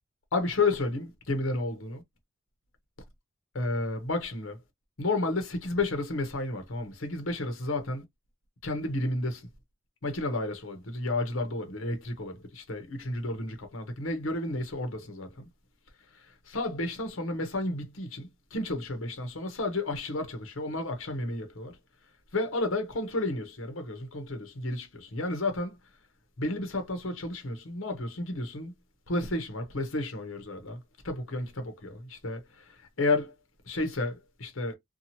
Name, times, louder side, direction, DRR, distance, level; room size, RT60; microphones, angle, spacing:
voice 1, 0.3-2.0 3.5-4.6 5.0-8.0 8.6-9.5 10.0-15.5 16.5-21.8 22.3-25.8 26.4-28.7 29.1-30.8 31.0-33.3 33.7-34.8, left 2 dB, 85° left, 0.9 m, -32 dB
2.8 x 2.3 x 2.8 m
head